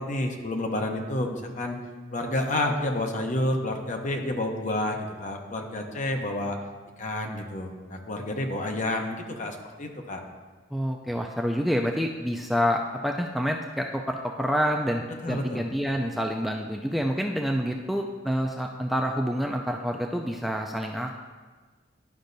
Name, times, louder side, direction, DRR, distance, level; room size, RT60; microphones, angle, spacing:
voice 1, 0.0-1.8 2.1-6.6 7.0-10.2 15.2-15.6, left 1 dB, 45° left, 3 dB, 0.8 m, -29 dB
voice 2, 10.7-21.1, equal, ahead, 2 dB, 0.3 m, -28 dB
11.5 x 5.3 x 2.6 m, 1.4 s
head